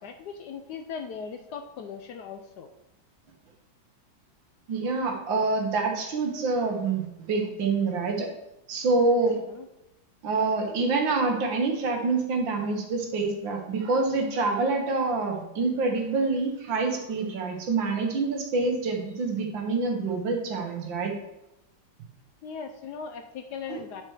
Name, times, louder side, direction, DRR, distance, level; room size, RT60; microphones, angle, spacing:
voice 1, 0.0-2.7 9.5-9.7 22.4-24.0, left 6 dB, 70° left, 6 dB, 1.0 m, -38 dB
voice 2, 4.7-8.3 8.7-9.4 10.2-21.1 23.7-23.8, right 3 dB, 70° right, 2 dB, 2.0 m, -26 dB
9.5 x 4.5 x 4.8 m, 0.87 s
omnidirectional pair, 2.1 m